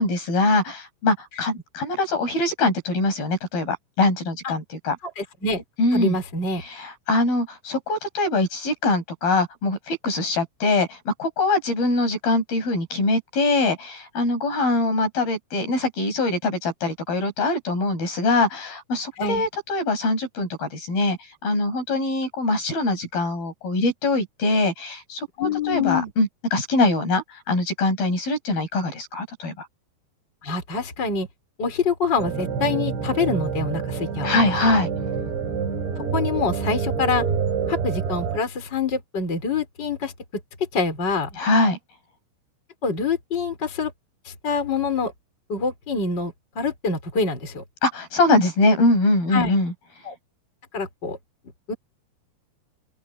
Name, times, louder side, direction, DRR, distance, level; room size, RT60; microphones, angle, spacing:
voice 1, 0.0-5.0 5.8-6.2 6.6-21.2 21.4-29.7 34.2-34.9 41.4-41.8 47.8-49.7, left 2 dB, 60° left, 10.0 m, -23 dB
voice 2, 5.2-5.6 5.9-6.6 19.2-19.5 25.4-26.1 30.4-31.3 31.6-34.6 36.0-37.3 37.7-40.1 40.7-41.3 42.8-43.9 44.3-45.1 45.5-47.6 49.3-49.5 50.1-50.2 50.7-51.2 51.7-51.8, left 4 dB, 25° left, 5.7 m, -25 dB
sound 1, 32.2-38.4, right 6 dB, 80° right, 6.5 m, -27 dB
open air
omnidirectional pair, 4.9 m